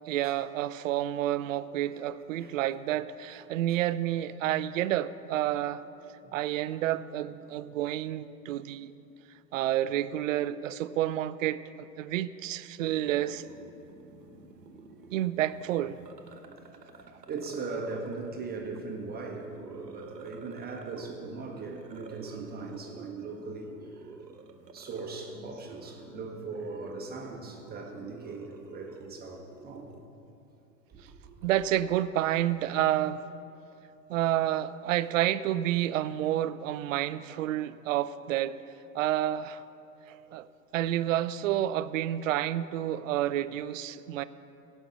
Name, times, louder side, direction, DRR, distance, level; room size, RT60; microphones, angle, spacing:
voice 1, 0.1-5.8 6.3-8.9 9.5-13.5 15.1-16.0 31.4-33.2 34.1-38.6 38.9-39.6 40.1-40.5 40.7-44.2, right 12 dB, 55° right, 15 dB, 0.5 m, -29 dB
sound 1, 12.8-30.0, right 4 dB, 85° right, 1.2 m, -49 dB
voice 2, 16.4-24.1 24.7-30.0 30.9-31.3, right 4 dB, 20° right, 1 dB, 1.1 m, -40 dB
16.5 x 5.6 x 7.9 m, 2.7 s
hypercardioid pair, 100°, 49 cm